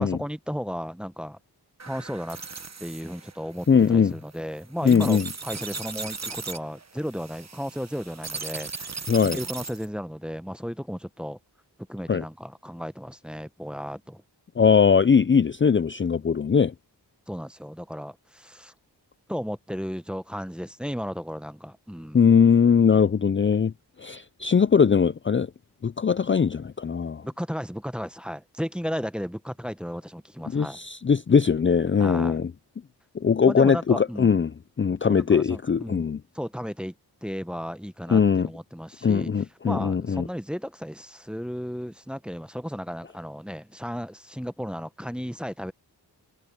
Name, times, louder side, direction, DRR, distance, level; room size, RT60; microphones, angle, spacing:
voice 1, 0.0-1.4 1.9-2.4 2.8-9.1 9.3-11.4 11.9-14.2 17.3-18.7 19.3-22.3 27.2-30.8 32.0-32.4 33.4-34.3 35.0-36.1 36.3-36.9 37.2-39.3 39.6-45.7, equal, ahead, 0.9 m, -34 dB
sound 1, 1.8-9.9, right 4 dB, 40° right, 1.4 m, -38 dB
voice 2, 3.7-4.1 4.8-5.3 9.1-9.4 12.1-12.2 14.6-16.7 22.1-23.7 24.0-25.5 25.8-27.2 30.5-32.5 33.1-36.2 38.1-38.5 39.0-40.3, left 6 dB, 30° left, 0.5 m, -20 dB
cardioid pair, 50°, 41 cm